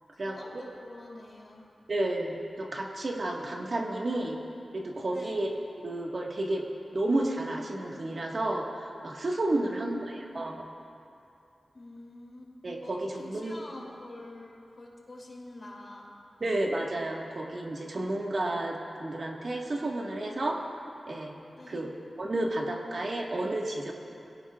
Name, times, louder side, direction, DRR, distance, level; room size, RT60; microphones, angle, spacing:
voice 1, 0.1-1.7 5.1-5.4 9.6-10.4 11.7-12.5 12.8-12.9 13.2-16.1 21.6-21.9, left 2 dB, 40° left, -2 dB, 3.1 m, -47 dB
voice 2, 1.9-4.4 4.7-5.5 5.8-6.6 6.9-10.6 12.6-13.6 16.4-20.6 21.1-21.3 21.7-23.9, right 1 dB, 55° right, -1 dB, 1.6 m, -31 dB
22.5 x 16.5 x 2.4 m, 2.7 s
wide cardioid pair, 85°, 0 cm